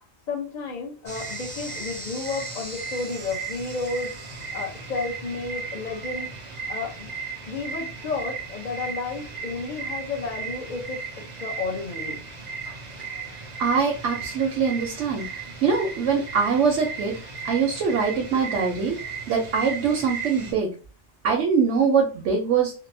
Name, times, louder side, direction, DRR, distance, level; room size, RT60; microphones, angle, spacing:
voice 1, 0.3-7.1 7.5-11.0 11.4-12.2 12.6-12.8 13.1-13.2, left 4 dB, 45° left, 0 dB, 0.7 m, -32 dB
sound 1, 1.1-20.5, right 5 dB, 45° right, 0.7 m, -36 dB
voice 2, 13.6-15.2 15.6-17.1 17.4-19.0 19.3-20.7 21.2-22.7, right 5 dB, 85° right, 1 dB, 0.9 m, -23 dB
2.7 x 2.0 x 2.6 m, 0.35 s
omnidirectional pair, 1.2 m